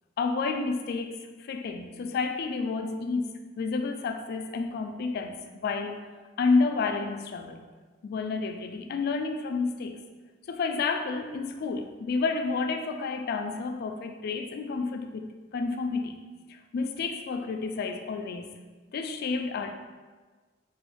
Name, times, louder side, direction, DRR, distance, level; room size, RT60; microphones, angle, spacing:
voice 1, 0.2-6.0 6.4-7.6 8.0-10.0 10.5-16.2 16.5-18.5 18.9-19.7, left 4 dB, 55° left, 6 dB, 0.3 m, -30 dB
3.1 x 3.1 x 3.1 m, 1.4 s
head